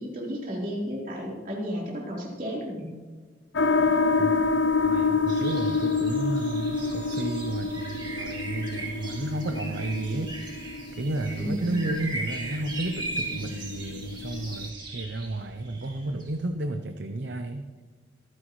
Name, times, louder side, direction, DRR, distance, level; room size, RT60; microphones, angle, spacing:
voice 1, 0.0-2.9 11.4-11.8, equal, 45° right, -3 dB, 3.7 m, -33 dB
sound 1, 3.5-14.7, left 4 dB, 70° left, 0.7 m, -28 dB
voice 2, 4.8-17.7, right 2 dB, 60° right, 7 dB, 0.7 m, -32 dB
sound 2, 5.3-16.4, right 2 dB, 25° right, 2.3 m, -39 dB
25.0 x 9.8 x 3.1 m, 1.5 s
head